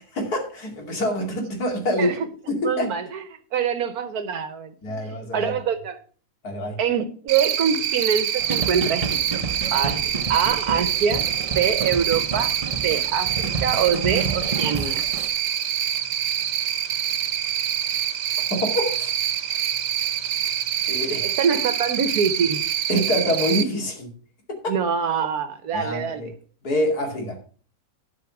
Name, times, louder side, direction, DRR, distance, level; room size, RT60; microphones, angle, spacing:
voice 1, 0.2-2.2 2.6-2.9 4.8-5.5 6.4-6.8 18.5-19.1 20.9-21.3 22.9-24.1 24.5-24.7 25.7-26.3 26.6-27.4, equal, 65° left, 2.9 m, -25 dB
voice 2, 2.6-3.2 3.5-6.0 6.8-9.4 9.7-12.5 12.8-15.0 21.2-22.6 24.7-26.3, right 7 dB, 65° right, 1.4 m, -25 dB
Cricket, 7.3-23.6, right 10 dB, 85° right, 1.4 m, -26 dB
sound 1, 8.4-15.3, right 4 dB, 25° right, 0.9 m, -30 dB
12.0 x 5.0 x 5.9 m
omnidirectional pair, 1.8 m